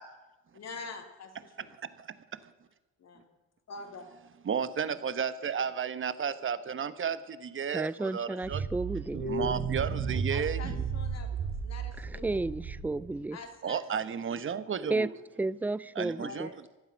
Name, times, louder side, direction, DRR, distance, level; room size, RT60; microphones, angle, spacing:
voice 1, 0.5-1.8 3.0-3.3 3.7-4.2 10.3-12.4 12.9-14.2 16.2-16.7, left 4 dB, 60° left, 2.9 m, -46 dB
voice 2, 1.8-2.1 4.4-8.6 9.3-10.6 13.6-15.1 15.9-16.7, right 7 dB, 40° right, 1.1 m, -33 dB
voice 3, 7.7-9.2 12.0-13.4 14.9-15.1 15.4-16.5, right 2 dB, 5° right, 0.4 m, -32 dB
sound 1, 8.4-13.1, right 5 dB, 80° right, 5.8 m, -33 dB
17.0 x 12.0 x 6.3 m
cardioid pair, 90°, 30 cm